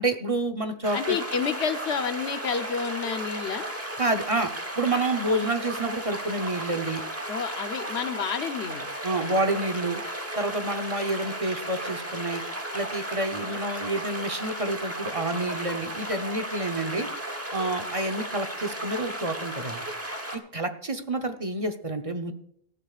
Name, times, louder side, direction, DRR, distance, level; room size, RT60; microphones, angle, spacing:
voice 1, 0.0-1.2 4.0-4.5 4.8-7.0 9.0-10.0 10.4-12.4 12.7-17.1 17.5-19.8 20.3-22.3, right 2 dB, 35° right, 5 dB, 1.0 m, -28 dB
sound 1, 0.8-20.4, right 1 dB, 15° right, 1.2 m, -35 dB
voice 2, 0.9-3.7 7.3-8.9 9.2-9.3, left 6 dB, 75° left, 8 dB, 1.2 m, -30 dB
18.0 x 14.0 x 2.5 m, 0.68 s
omnidirectional pair, 1.1 m